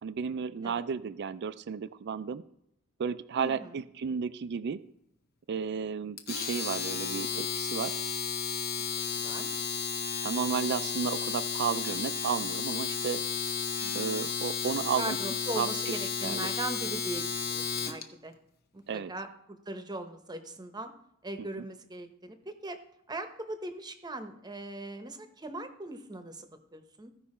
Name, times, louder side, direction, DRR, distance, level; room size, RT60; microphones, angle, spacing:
voice 1, 0.0-2.4 3.0-4.8 5.5-8.0 10.2-13.2 13.9-15.2 15.6-15.9 16.2-16.5 18.9-19.1 21.4-21.5, right 6 dB, 50° right, 15 dB, 0.4 m, -33 dB
voice 2, 3.3-3.9 9.1-9.5 13.8-14.1 15.0-18.3 18.7-20.9 21.2-22.8 23.1-27.1, right 2 dB, 20° right, 8 dB, 0.8 m, -40 dB
Domestic sounds home sounds, 6.2-18.0, left 6 dB, 50° left, 1.0 m, -33 dB
15.5 x 5.5 x 4.3 m, 0.77 s
head